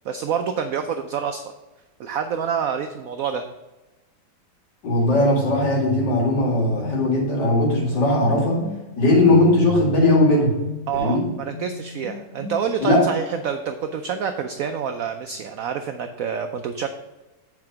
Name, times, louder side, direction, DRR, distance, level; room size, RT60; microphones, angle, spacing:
voice 1, 0.0-1.4 2.0-3.5 10.9-16.9, right 7 dB, 80° right, 7 dB, 0.7 m, -27 dB
voice 2, 4.8-8.6 9.0-10.5 11.0-11.2 12.8-13.0, left 2 dB, 65° left, -3 dB, 2.9 m, -18 dB
sound 1, 5.3-12.9, right 1 dB, 25° left, 2.2 m, -35 dB
7.7 x 4.7 x 4.7 m, 1.1 s
omnidirectional pair, 2.0 m